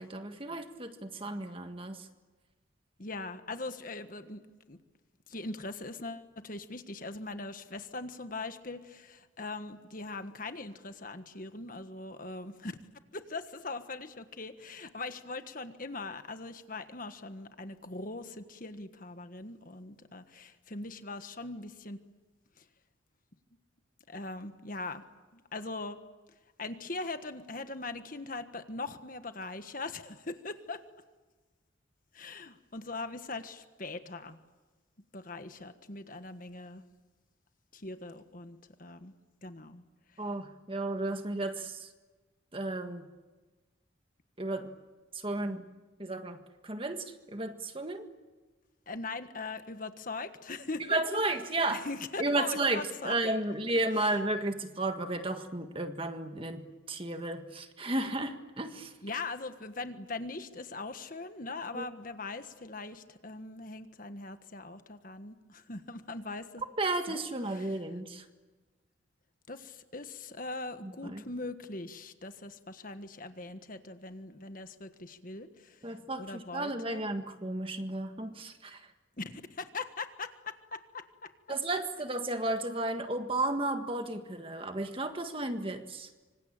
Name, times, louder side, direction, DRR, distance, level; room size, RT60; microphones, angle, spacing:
voice 1, 0.0-2.1 40.2-41.9 42.5-43.1 44.4-44.7 45.1-45.7 46.0-48.1 50.9-51.8 52.2-58.9 61.7-61.8 66.8-68.2 70.8-71.2 75.8-78.9 81.5-86.1, right 2 dB, 25° right, 7 dB, 1.7 m, -33 dB
voice 2, 3.0-4.8 5.3-12.7 13.1-22.0 22.6-22.7 24.1-25.0 25.3-26.0 26.6-30.8 32.1-34.4 35.1-36.8 37.7-39.1 39.4-39.8 40.1-40.2 48.9-51.0 51.7-53.1 54.0-54.1 59.0-66.6 67.1-67.2 67.5-67.7 69.5-77.0 79.2-81.3, left 3 dB, 45° left, 9 dB, 1.5 m, -41 dB
26.0 x 26.0 x 8.8 m, 1.3 s
head